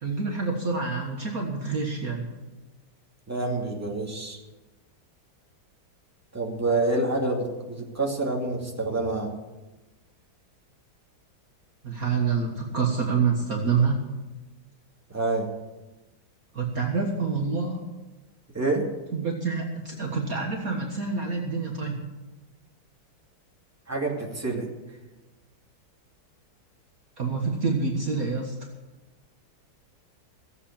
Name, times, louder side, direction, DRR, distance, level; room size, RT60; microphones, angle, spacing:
voice 1, 0.0-2.3 11.8-14.1 16.5-17.9 19.1-22.0 27.2-28.6, right 4 dB, 45° right, 0 dB, 1.9 m, -27 dB
voice 2, 3.3-4.4 6.3-9.3 15.1-15.5 18.5-18.9 23.9-24.7, right 2 dB, 5° right, -1 dB, 2.4 m, -27 dB
16.0 x 8.2 x 8.7 m, 1.1 s
omnidirectional pair, 2.2 m